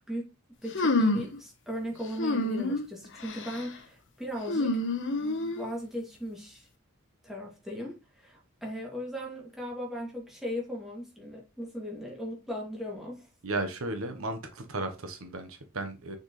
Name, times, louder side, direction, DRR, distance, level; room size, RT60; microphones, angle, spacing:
voice 1, 0.6-4.8 5.1-6.7 7.2-13.3, equal, ahead, 2.5 m, -38 dB
sound 1, 0.7-1.4 2.2-2.8 3.2-3.6 4.5-5.7, left 2 dB, 55° left, 1.2 m, -28 dB
voice 2, 13.4-16.2, right 2 dB, 65° right, 1.1 m, -34 dB
6.5 x 6.1 x 3.2 m
head